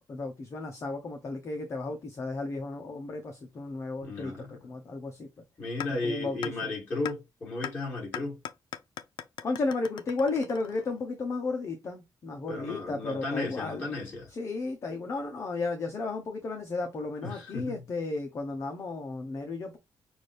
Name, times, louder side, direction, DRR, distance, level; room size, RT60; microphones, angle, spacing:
voice 1, 0.1-5.3 5.9-6.7 9.4-13.8 14.3-19.8, left 3 dB, 40° left, 0.9 m, -34 dB
voice 2, 4.0-4.5 5.6-8.4 12.5-14.3 17.2-17.8, left 2 dB, 25° left, 3.0 m, -34 dB
sound 1, 5.8-5.9 6.4-6.5 7.1-7.2 7.6-7.7 8.1-11.1, left 10 dB, 85° left, 0.5 m, -38 dB
6.0 x 2.6 x 3.3 m
wide cardioid pair, 160°, 8 cm